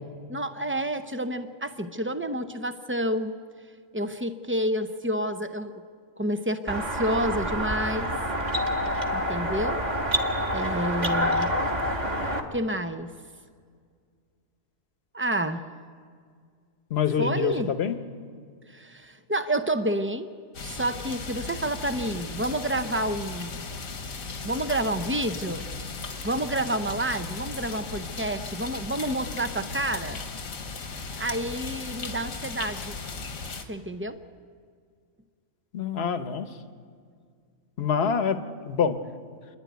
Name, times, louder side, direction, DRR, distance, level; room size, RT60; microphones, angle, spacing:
voice 1, 0.3-3.3 3.9-5.8 6.2-8.1 9.1-9.8 10.5-11.5 12.5-13.1 15.1-15.7 17.2-17.7 18.7-20.3 20.6-23.7 24.4-25.7 26.2-30.2 31.2-33.0 33.7-34.2, right 1 dB, 15° right, 9 dB, 0.5 m, -29 dB
sound 1, 6.7-12.4, equal, 30° right, 1.7 m, -27 dB
voice 2, 16.9-18.0 35.7-36.5 37.8-38.4 38.7-39.0, left 7 dB, 55° left, 10 dB, 1.2 m, -25 dB
sound 2, 20.5-33.6, left 4 dB, 80° left, 1.8 m, -37 dB
28.5 x 11.5 x 9.4 m, 2.1 s
omnidirectional pair, 1.4 m